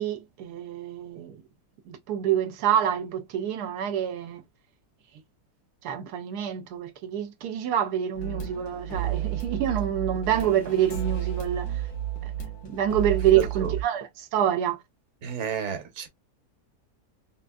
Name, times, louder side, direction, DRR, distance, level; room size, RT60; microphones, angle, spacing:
voice 1, 0.0-1.4 1.9-4.4 5.8-11.7 12.2-12.3 12.6-14.8, right 10 dB, 90° right, 1.1 m, -27 dB
sound 1, 8.1-13.8, right 11 dB, 80° left, 1.5 m, -31 dB
voice 2, 13.3-13.7 15.2-16.1, right 8 dB, 55° right, 1.1 m, -31 dB
3.5 x 2.5 x 2.2 m
omnidirectional pair, 1.6 m